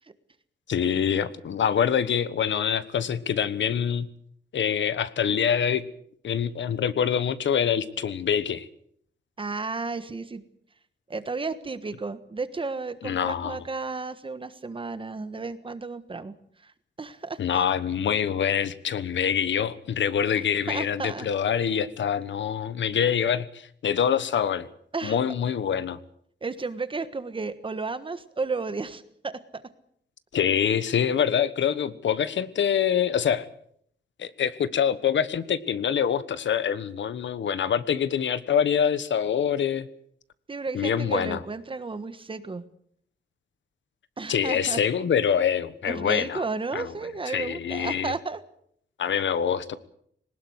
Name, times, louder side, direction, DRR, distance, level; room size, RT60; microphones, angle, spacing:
voice 1, 0.7-4.1 4.5-5.8 6.2-8.7 13.0-13.6 17.4-24.7 25.0-26.0 30.3-33.5 34.2-39.9 40.7-41.4 44.3-46.4 46.7-46.9 47.3-48.1 49.0-49.8, left 8 dB, 80° left, 14 dB, 1.3 m, -25 dB
voice 2, 9.4-10.4 11.1-16.3 16.6-16.7 17.0-17.6 20.3-21.3 24.9-25.2 26.4-29.6 40.5-42.6 44.2-44.8 45.9-48.4, right 4 dB, 30° right, 12 dB, 1.4 m, -33 dB
21.0 x 19.5 x 8.0 m, 0.67 s
wide cardioid pair, 160°, 19 cm